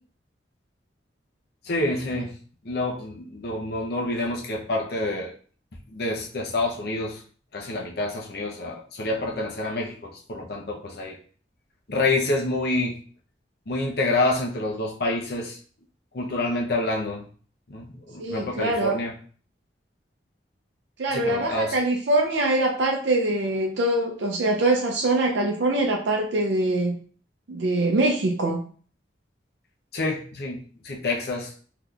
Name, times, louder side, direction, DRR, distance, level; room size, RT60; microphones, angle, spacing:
voice 1, 1.6-2.3 2.6-5.3 5.9-7.2 7.5-11.2 11.9-13.0 13.7-15.6 16.1-17.2 17.7-19.1 21.1-21.7 29.9-31.5, left 2 dB, 60° left, 0 dB, 0.7 m, -27 dB
voice 2, 18.2-19.0 21.0-27.0 27.5-28.6, right 2 dB, 80° right, 1 dB, 0.5 m, -23 dB
3.5 x 2.8 x 2.4 m, 0.43 s
head